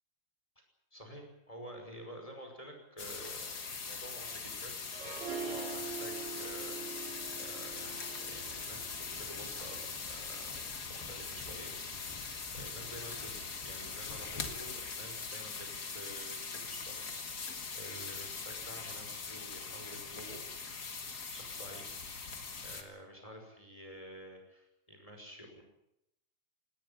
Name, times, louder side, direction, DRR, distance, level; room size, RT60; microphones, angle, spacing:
voice 1, 0.9-3.6 3.8-10.6 10.9-12.1 12.5-20.9 21.3-22.1 22.6-25.6, equal, 5° left, 3 dB, 5.2 m, -50 dB
sound 1, 3.0-22.8, left 5 dB, 40° left, 1.4 m, -42 dB
Harp, 4.9-10.0, right 5 dB, 80° right, 6.5 m, -44 dB
sound 2, 8.3-14.5, left 2 dB, 60° left, 8.9 m, -51 dB
20.0 x 18.5 x 10.0 m, 0.82 s
omnidirectional pair, 5.0 m